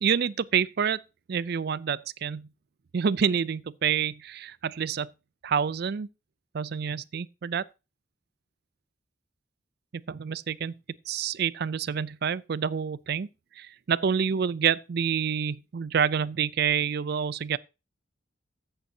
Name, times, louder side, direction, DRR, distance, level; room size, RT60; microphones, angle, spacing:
voice 1, 0.0-1.0 1.3-2.5 2.9-5.1 5.4-6.1 6.5-7.7 10.1-10.7 11.1-13.3 13.6-17.6, right 7 dB, 55° right, 0.4 m, -27 dB
14.5 x 8.2 x 2.8 m
head